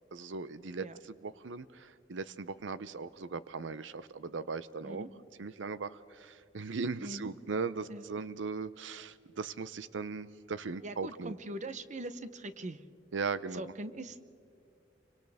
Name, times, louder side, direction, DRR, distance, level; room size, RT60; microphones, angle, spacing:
voice 1, 0.1-5.0 5.4-11.3 13.1-13.6, right 4 dB, 90° right, 14 dB, 0.6 m, -38 dB
voice 2, 7.0-7.3 7.9-8.0 10.8-12.8 13.5-14.2, right 1 dB, 40° right, 12 dB, 0.8 m, -42 dB
29.5 x 25.0 x 3.5 m, 2.4 s
head